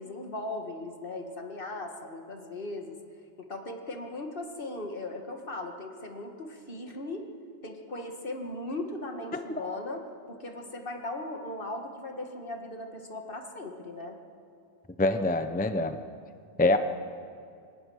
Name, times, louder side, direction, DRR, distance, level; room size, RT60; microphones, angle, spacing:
voice 1, 0.0-3.0 3.4-7.3 7.6-14.2, left 2 dB, 60° left, 4 dB, 2.0 m, -38 dB
voice 2, 9.3-9.8 15.0-16.0 16.6-16.8, left 2 dB, 10° left, 9 dB, 0.6 m, -26 dB
24.0 x 18.5 x 6.4 m, 2.5 s
omnidirectional pair, 1.0 m